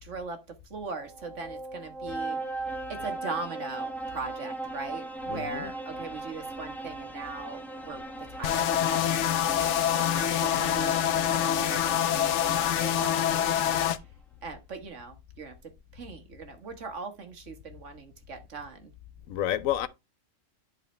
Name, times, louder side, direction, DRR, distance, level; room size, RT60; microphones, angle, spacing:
voice 1, 0.0-2.4 2.9-12.3 12.8-13.5 14.4-18.9, right 4 dB, 65° right, 1.7 m, -40 dB
sound 1, 0.9-13.7, right 2 dB, ahead, 1.1 m, -39 dB
voice 2, 5.3-5.7 19.3-19.9, left 11 dB, 90° left, 1.1 m, -29 dB
sound 2, 8.4-14.0, left 10 dB, 65° left, 0.9 m, -26 dB
10.5 x 4.2 x 3.2 m
omnidirectional pair, 1.4 m